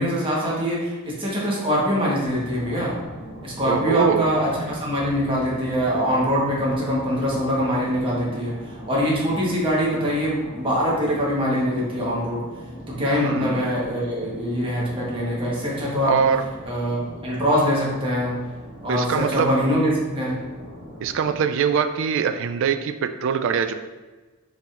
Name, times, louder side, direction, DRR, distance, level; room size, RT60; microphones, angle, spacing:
voice 1, 0.0-3.0 3.4-8.5 8.9-12.4 12.9-16.3 16.6-18.4 18.8-20.4, equal, 25° right, -5 dB, 1.1 m, -23 dB
sound 1, 2.2-21.4, equal, 20° left, 1.3 m, -41 dB
voice 2, 3.6-4.3 13.0-13.7 16.0-16.4 18.9-19.5 21.0-23.7, right 7 dB, 65° right, 9 dB, 0.3 m, -23 dB
4.6 x 3.5 x 2.4 m, 1.3 s
head